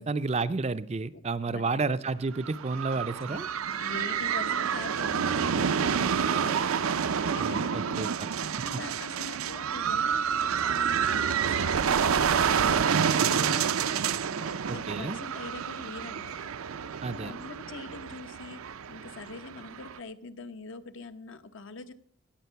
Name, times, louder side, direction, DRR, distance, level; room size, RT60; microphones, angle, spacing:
voice 1, 0.0-3.5 7.4-8.3 14.7-15.2 17.0-17.3, right 3 dB, 30° right, 12 dB, 0.4 m, -31 dB
voice 2, 1.1-1.8 3.3-3.4 3.8-6.7 7.1-8.1 8.6-13.9 14.4-16.5 17.1-18.6 18.9-21.9, left 3 dB, 65° left, 9 dB, 1.0 m, -43 dB
sound 1, 2.3-20.0, right 7 dB, 85° right, 0.5 m, -28 dB
17.5 x 9.0 x 5.7 m, 0.63 s
head